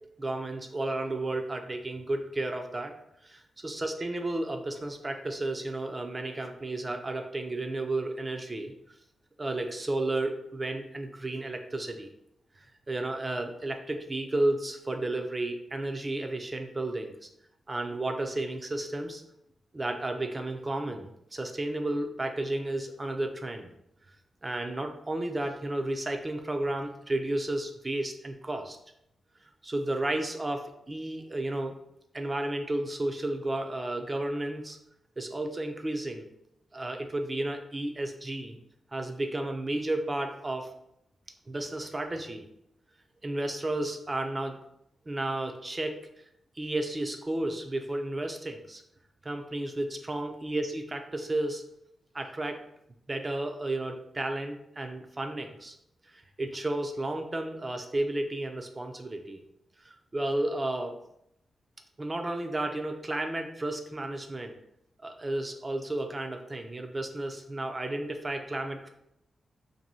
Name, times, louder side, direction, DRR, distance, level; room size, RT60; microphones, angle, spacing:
voice 1, 0.0-2.9 3.2-8.7 9.4-12.1 12.6-17.1 17.7-19.2 19.7-23.7 24.4-28.8 29.6-31.8 32.1-34.8 35.2-36.3 36.7-38.6 38.9-40.7 41.5-42.4 43.2-44.6 45.1-46.0 46.6-48.8 49.2-51.6 52.1-52.6 53.1-55.7 56.1-59.4 59.8-61.0 62.0-64.6 65.0-68.9, right 2 dB, 25° right, 4 dB, 0.3 m, -32 dB
2.6 x 2.6 x 4.2 m, 0.78 s
wide cardioid pair, 120°, 0 cm